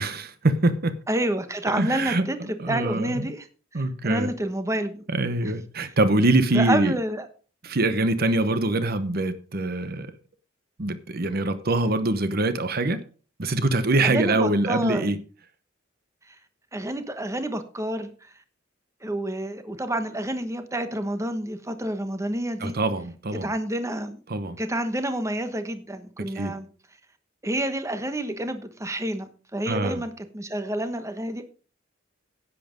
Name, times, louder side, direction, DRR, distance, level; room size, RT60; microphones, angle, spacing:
voice 1, 0.0-1.0 1.7-3.3 3.7-4.3 5.1-6.9 7.6-10.1 10.8-13.0 13.4-15.2 22.6-23.5 24.3-24.6 26.3-26.5 29.7-30.0, right 2 dB, 50° right, 1.0 m, -24 dB
voice 2, 1.1-3.5 3.7-5.1 5.4-5.5 6.5-7.3 14.0-15.2 16.3-16.4 16.7-18.3 19.0-22.8 23.4-24.2 24.6-26.7 27.4-31.4, right 1 dB, 15° right, 1.1 m, -29 dB
10.5 x 8.5 x 5.1 m
head